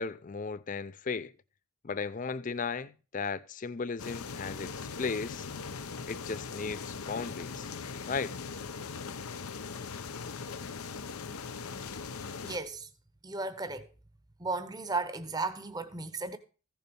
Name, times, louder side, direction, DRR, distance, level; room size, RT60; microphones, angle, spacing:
voice 1, 0.0-1.3 1.8-5.5 6.1-7.7 8.1-8.4, left 5 dB, 35° left, 0.4 m, -36 dB
sound 1, 4.0-12.6, left 5 dB, 80° left, 0.8 m, -40 dB
voice 2, 12.4-12.9 13.2-13.9 14.4-16.4, right 3 dB, 20° right, 0.9 m, -35 dB
15.0 x 7.0 x 5.3 m
head